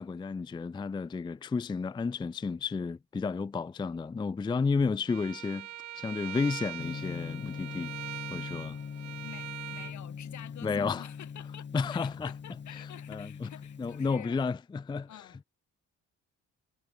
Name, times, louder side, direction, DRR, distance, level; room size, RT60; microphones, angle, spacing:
voice 1, 0.0-5.7 5.9-7.9 8.3-8.8 10.6-11.0 11.7-12.3 13.1-13.5 13.8-15.1, left 4 dB, 15° left, 0.4 m, -32 dB
Bowed string instrument, 5.1-9.9, right 13 dB, 65° right, 1.0 m, -42 dB
Gong, 6.8-14.1, left 6 dB, 35° left, 1.6 m, -42 dB
voice 2, 9.0-14.4 15.1-15.5, left 11 dB, 70° left, 2.8 m, -49 dB
cardioid pair, 90°, 30 cm